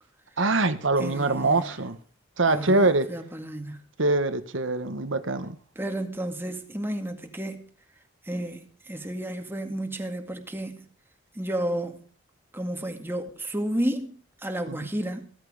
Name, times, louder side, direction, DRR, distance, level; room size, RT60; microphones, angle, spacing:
voice 1, 0.4-2.0 2.4-3.1 4.0-5.6 14.7-14.8, right 2 dB, 80° right, 1.5 m, -24 dB
voice 2, 1.0-1.7 2.5-3.8 5.8-7.7 8.3-10.9 11.3-12.1 12.5-15.3, right 1 dB, 10° right, 2.1 m, -32 dB
15.5 x 13.5 x 5.0 m
head